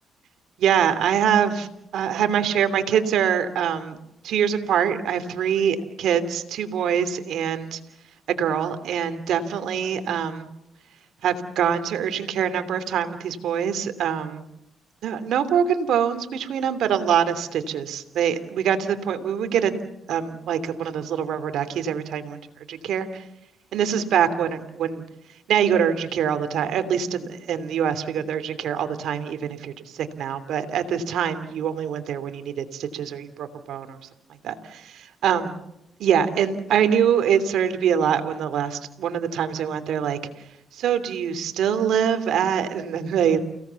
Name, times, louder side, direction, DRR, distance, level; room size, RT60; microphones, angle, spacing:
voice 1, 0.6-1.7 1.9-4.0 4.2-7.8 8.3-10.5 11.2-14.5 15.0-19.7 20.1-22.4 22.7-23.2 23.7-25.0 25.5-34.0 34.4-35.6 36.0-40.2 40.7-43.4, right 8 dB, 75° right, 10 dB, 3.0 m, -24 dB
29.5 x 18.0 x 7.2 m, 0.86 s
cardioid pair, 90°, 0 cm